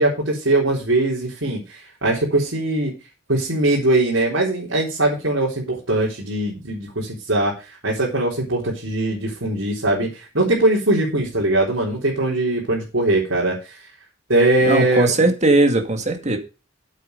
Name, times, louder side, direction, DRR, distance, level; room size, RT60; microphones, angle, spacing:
voice 1, 0.0-2.9 3.3-13.8 14.3-15.3, right 2 dB, 80° right, -5 dB, 4.0 m, -21 dB
voice 2, 14.6-16.4, right 2 dB, 35° right, 5 dB, 2.1 m, -18 dB
9.0 x 8.3 x 5.3 m, 0.31 s
head